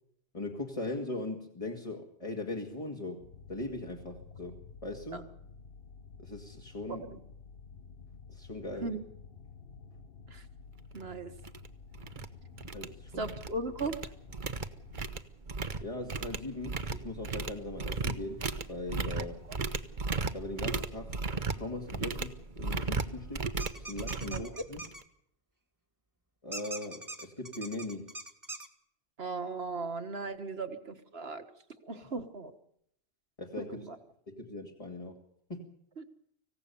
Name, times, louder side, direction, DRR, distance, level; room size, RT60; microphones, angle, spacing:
voice 1, 0.3-5.3 6.2-7.1 8.3-9.0 12.7-13.3 15.8-19.4 20.3-21.2 21.6-23.5 23.8-24.8 26.4-28.1 33.4-33.8 34.3-35.2 35.5-35.7, left 2 dB, 30° left, 2 dB, 2.3 m, -40 dB
sound 1, 3.2-15.2, left 5 dB, 60° left, 1.4 m, -51 dB
sound 2, 10.9-11.0 11.4-11.7 11.9-12.3 12.6-13.5 13.8-25.0, right 4 dB, 45° right, 1.3 m, -36 dB
voice 2, 10.9-11.3 13.2-14.0 19.2-19.3 24.3-24.4 29.2-31.5 31.8-32.6 33.6-34.0 36.0-36.1, right 3 dB, 65° right, 8 dB, 1.9 m, -37 dB
sound 3, 23.6-25.0 26.5-28.7, right 2 dB, 15° right, 1.9 m, -42 dB
26.0 x 16.5 x 7.1 m, 0.73 s
omnidirectional pair, 1.1 m